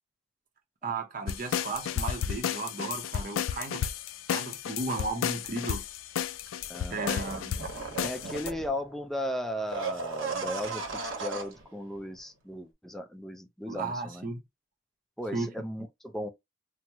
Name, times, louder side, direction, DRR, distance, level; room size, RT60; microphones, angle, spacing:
voice 1, 0.8-3.9 4.3-5.8 6.9-7.7 13.7-14.4 15.3-15.5, right 3 dB, 45° right, 0.6 m, -35 dB
sound 1, 1.3-8.5, left 9 dB, 90° left, 0.3 m, -33 dB
sound 2, 6.9-8.9 9.6-11.6 12.0-12.1, right 4 dB, 90° right, 1.0 m, -36 dB
voice 2, 8.0-14.3 15.2-16.3, left 1 dB, ahead, 0.4 m, -36 dB
2.9 x 2.0 x 3.4 m
head